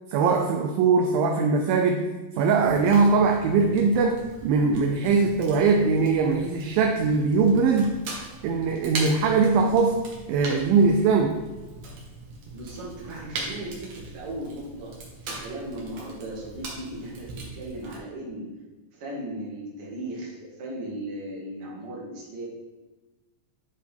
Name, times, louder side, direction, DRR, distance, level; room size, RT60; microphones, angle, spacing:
voice 1, 0.1-8.0 8.4-10.0 10.3-11.4, right 4 dB, 80° right, 3 dB, 2.1 m, -21 dB
Fire, 2.6-18.0, right 3 dB, 60° right, 1.9 m, -40 dB
voice 2, 12.5-15.0 15.2-18.5 18.9-22.4, right 1 dB, 45° right, -5 dB, 2.2 m, -37 dB
9.9 x 5.2 x 3.5 m, 1.2 s
omnidirectional pair, 4.6 m